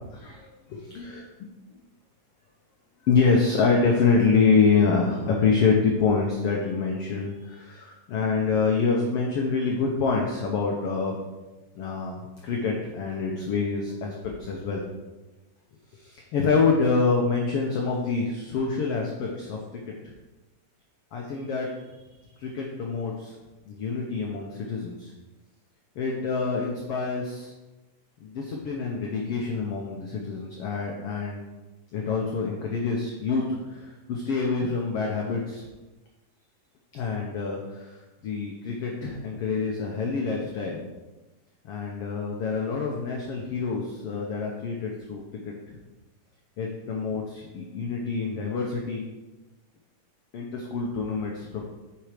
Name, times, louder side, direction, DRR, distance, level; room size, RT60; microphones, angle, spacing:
voice 1, 0.1-1.2 3.0-11.2 11.7-14.8 15.9-19.6 21.1-21.7 22.4-23.3 23.7-25.1 25.9-27.5 28.2-31.4 31.9-35.6 36.9-40.8 41.6-45.5 46.6-49.0 50.3-51.6, left 4 dB, 75° left, 0 dB, 1.3 m, -26 dB
9.1 x 4.6 x 5.0 m, 1.1 s
omnidirectional pair, 3.8 m